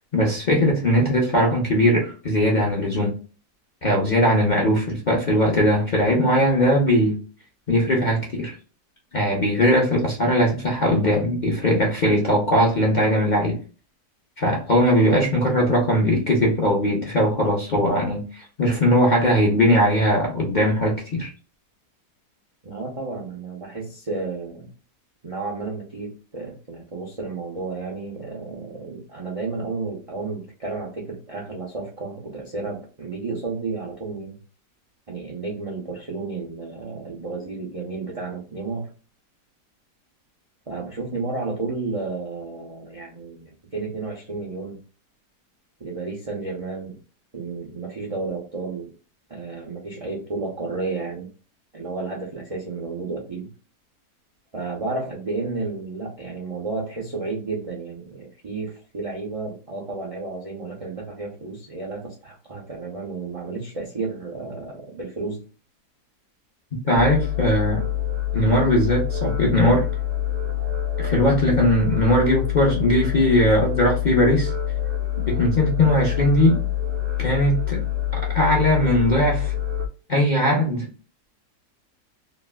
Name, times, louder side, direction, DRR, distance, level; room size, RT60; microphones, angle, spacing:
voice 1, 0.1-3.1 3.8-7.2 7.7-8.5 9.1-13.5 14.4-21.3 66.8-67.8 68.3-69.8 71.0-74.5 75.3-76.6 77.2-77.8 78.1-79.5 80.1-80.9, equal, 50° left, 0.5 m, -20 dB
voice 2, 22.6-24.7 25.2-34.4 35.1-38.9 40.7-44.8 45.8-47.0 47.3-48.9 49.3-51.3 51.7-53.5 54.5-65.5, right 3 dB, 60° right, 0.3 m, -32 dB
sound 1, 66.9-79.9, left 11 dB, 80° right, 1.2 m, -26 dB
3.2 x 2.4 x 2.2 m
omnidirectional pair, 1.8 m